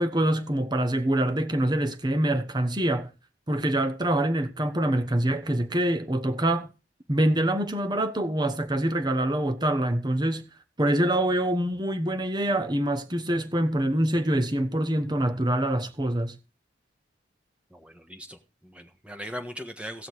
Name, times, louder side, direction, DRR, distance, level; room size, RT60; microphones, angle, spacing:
voice 1, 0.0-3.1 3.5-6.7 7.1-10.5 10.8-16.3, right 1 dB, 20° right, 1.1 m, -25 dB
voice 2, 17.7-20.1, equal, 5° right, 1.4 m, -39 dB
17.5 x 6.4 x 4.7 m
head